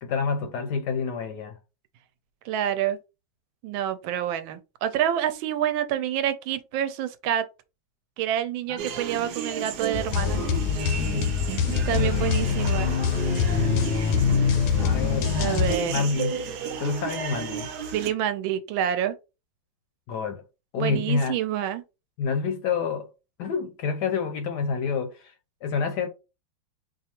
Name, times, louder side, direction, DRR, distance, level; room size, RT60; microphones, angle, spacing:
voice 1, 0.0-1.6 8.7-9.1 10.1-11.4 11.8-12.3 13.5-14.0 14.8-16.3 16.8-17.7 20.1-20.4 20.7-21.4 22.2-23.1 23.4-25.3 25.6-26.1, left 5 dB, 70° left, 1.0 m, -28 dB
voice 2, 2.4-3.0 3.6-7.5 8.2-10.4 11.6-13.0 15.4-16.0 17.9-19.2 20.8-21.8, right 10 dB, 85° right, 1.3 m, -27 dB
sound 1, 8.8-18.1, right 7 dB, 65° right, 1.1 m, -34 dB
sound 2, 9.9-15.7, left 6 dB, 90° left, 1.4 m, -24 dB
4.7 x 2.4 x 2.8 m
omnidirectional pair, 2.1 m